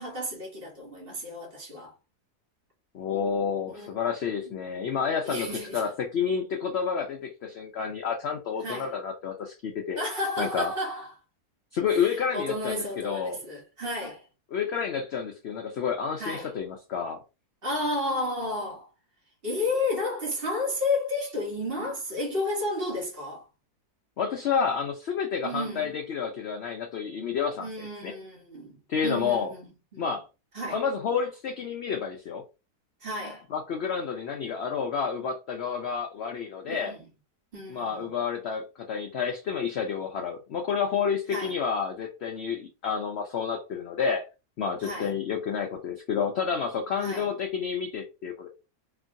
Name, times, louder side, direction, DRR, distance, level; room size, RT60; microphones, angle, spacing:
voice 1, 0.0-1.9 3.7-3.9 4.5-4.6 5.2-5.9 8.6-8.9 10.0-11.1 11.9-14.3 16.2-16.5 17.6-18.9 19.4-23.4 25.4-26.0 27.6-30.2 30.5-30.8 33.0-33.4 36.7-37.0 37.5-38.1 41.3-41.5 44.8-45.1 47.0-47.3, left 2 dB, 40° right, 1.3 m, -32 dB
voice 2, 2.9-10.0 10.4-10.7 11.7-13.4 14.5-17.2 24.2-28.1 28.9-29.5 30.0-30.2 30.7-32.4 33.5-36.9 37.7-44.2 44.6-48.5, left 6 dB, 70° left, 0.6 m, -30 dB
3.0 x 2.6 x 2.5 m
omnidirectional pair, 1.7 m